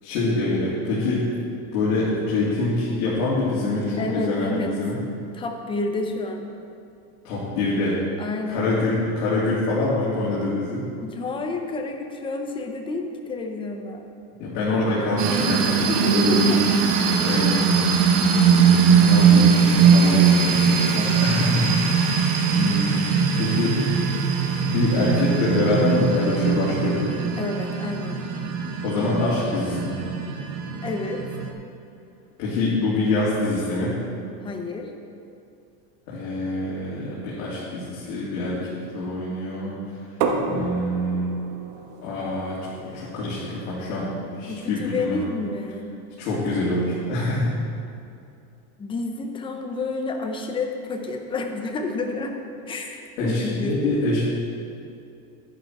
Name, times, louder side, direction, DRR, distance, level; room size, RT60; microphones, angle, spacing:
voice 1, 0.0-1.3 1.7-5.0 7.2-8.0 8.5-10.8 14.4-16.5 17.2-17.6 18.5-22.1 22.5-23.1 23.4-23.8 24.6-27.1 28.8-30.0 32.4-33.9 36.1-39.8 40.4-41.3 42.0-45.2 46.2-47.5 53.2-54.2, left 2 dB, 75° left, -9 dB, 3.2 m, -25 dB
voice 2, 4.0-4.8 5.3-6.5 8.2-8.7 11.0-14.1 15.9-16.6 27.4-28.2 30.8-31.2 34.4-34.9 44.5-45.9 48.8-52.4 52.7-54.0, left 3 dB, 10° left, 3 dB, 0.6 m, -30 dB
sound 1, 15.2-31.5, right 6 dB, 40° right, 1.1 m, -20 dB
sound 2, 40.2-45.9, right 4 dB, 80° right, 1.5 m, -33 dB
11.0 x 10.5 x 4.7 m, 2.6 s
cardioid pair, 170°, 44 cm